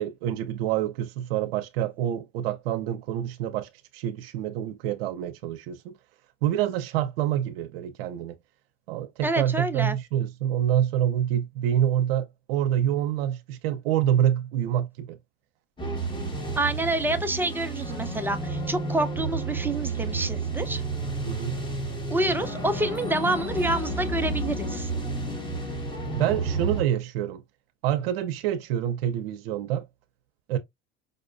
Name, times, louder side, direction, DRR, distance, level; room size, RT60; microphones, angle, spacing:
voice 1, 0.0-6.0 6.4-8.4 8.9-15.2 21.3-21.6 26.1-27.4 27.8-29.9 30.5-30.6, right 11 dB, 85° right, 0.6 m, -27 dB
voice 2, 9.2-10.0 16.6-20.8 22.1-24.9, right 2 dB, 5° right, 0.5 m, -27 dB
sound 1, 15.8-26.8, right 2 dB, 15° left, 1.2 m, -31 dB
5.2 x 2.2 x 2.4 m
supercardioid pair, 110°, 29 cm